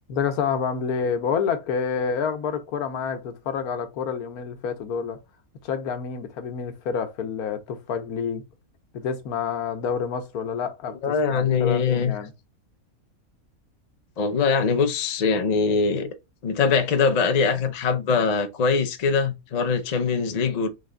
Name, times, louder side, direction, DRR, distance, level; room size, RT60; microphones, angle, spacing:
voice 1, 0.1-5.2 5.6-8.4 8.9-12.3, left 6 dB, 85° left, 1.3 m, -28 dB
voice 2, 11.0-12.1 14.2-16.1 16.4-20.7, left 5 dB, 55° left, 0.4 m, -22 dB
3.9 x 3.3 x 3.7 m
omnidirectional pair, 1.6 m